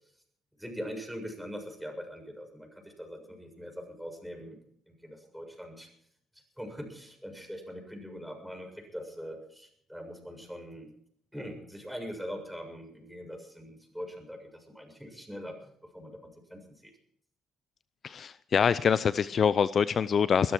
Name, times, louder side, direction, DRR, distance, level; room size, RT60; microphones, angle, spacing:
voice 1, 0.6-4.6 4.9-5.9 6.6-10.9 11.3-15.5 15.9-16.2 16.5-16.9, equal, ahead, 3 dB, 7.0 m, -42 dB
voice 2, 18.0-20.5, left 7 dB, 50° left, 16 dB, 0.5 m, -25 dB
21.5 x 13.5 x 4.6 m, 0.66 s
supercardioid pair, 65°, 0 cm